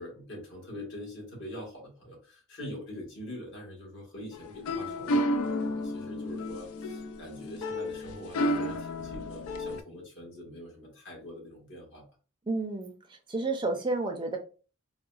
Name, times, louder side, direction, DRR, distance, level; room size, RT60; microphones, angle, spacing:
voice 1, 0.0-12.1, left 1 dB, 55° left, -2 dB, 1.3 m, -44 dB
sound 1, 4.3-9.8, left 1 dB, 85° left, 0.4 m, -32 dB
voice 2, 12.5-14.4, right 3 dB, 20° right, 3 dB, 0.4 m, -31 dB
3.8 x 2.1 x 2.4 m, 0.36 s
head